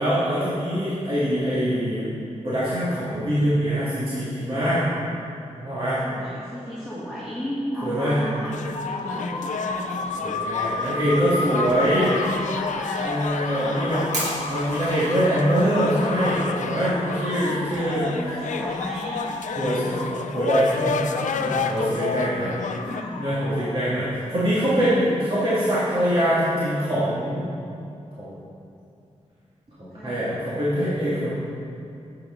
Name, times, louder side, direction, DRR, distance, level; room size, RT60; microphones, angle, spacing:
voice 1, 0.0-2.1 2.4-4.8 5.6-6.0 7.8-8.2 10.2-12.1 13.0-14.1 14.5-18.2 19.6-21.0 21.4-22.5 23.2-27.5 28.2-28.4 29.8-31.3, equal, 45° right, -10 dB, 2.2 m, -23 dB
voice 2, 6.0-10.0 10.8-11.1 11.5-13.2 13.5-14.3 17.5-19.3 19.7-20.1 21.1-21.8 22.1-23.2 25.0-25.7 29.8-30.2, equal, 5° right, -10 dB, 2.3 m, -35 dB
sound 1, 8.5-23.0, left 6 dB, 85° left, 0.4 m, -32 dB
sound 2, 8.7-24.2, left 3 dB, 50° left, 0.7 m, -33 dB
Fire, 13.1-24.6, right 1 dB, 70° right, 2.3 m, -42 dB
10.0 x 7.8 x 3.8 m, 2.7 s
cardioid pair, 65°, 13 cm